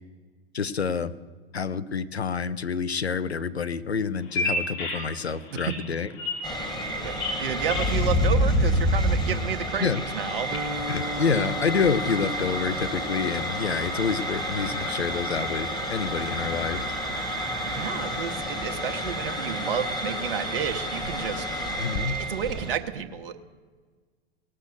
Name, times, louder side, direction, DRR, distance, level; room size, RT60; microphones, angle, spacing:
voice 1, 0.5-1.1 1.5-6.1 9.8-10.0 10.9-16.8 21.8-22.2, left 6 dB, 85° left, 14 dB, 0.6 m, -28 dB
Bird vocalization bird call bird song, 4.2-10.6, left 2 dB, 45° left, 3.3 m, -34 dB
sound 1, 6.4-22.7, equal, 15° left, 1.9 m, -29 dB
voice 2, 7.4-10.5 17.7-21.5 22.1-23.4, right 8 dB, 60° right, 7 dB, 1.0 m, -31 dB
Guitar, 10.5-18.3, right 1 dB, 15° right, 0.7 m, -40 dB
18.0 x 6.5 x 8.0 m, 1.5 s
figure-of-eight pair, 100°, 31 cm